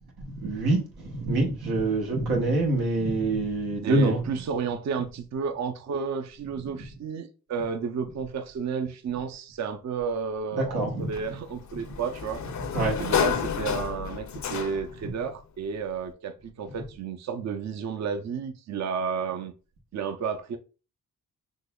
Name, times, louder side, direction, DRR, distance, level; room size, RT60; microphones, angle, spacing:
voice 1, 0.2-4.2 10.5-11.1 11.8-11.9 12.7-13.0, right 2 dB, 90° right, 0.9 m, -25 dB
voice 2, 3.8-12.4 13.0-19.5 19.9-20.6, right 6 dB, 50° right, 0.5 m, -32 dB
Sliding door, 11.1-15.1, left 8 dB, 50° left, 0.5 m, -30 dB
3.8 x 2.9 x 2.2 m
supercardioid pair, 45°, 36 cm